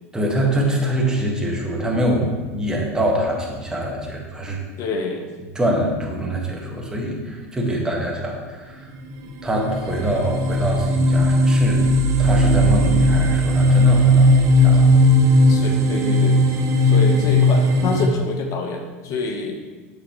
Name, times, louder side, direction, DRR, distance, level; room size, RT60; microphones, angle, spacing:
voice 1, 0.1-4.6 5.5-8.9 9.4-11.9 12.2-14.9, right 1 dB, 10° right, -2 dB, 1.6 m, -24 dB
voice 2, 4.8-5.3 15.5-16.4 16.8-19.6, left 3 dB, 45° left, 4 dB, 1.1 m, -27 dB
sound 1, 9.1-9.2 9.6-18.1, left 1 dB, 45° right, 0.8 m, -16 dB
7.3 x 6.7 x 3.1 m, 1.3 s
hypercardioid pair, 100°, 7 cm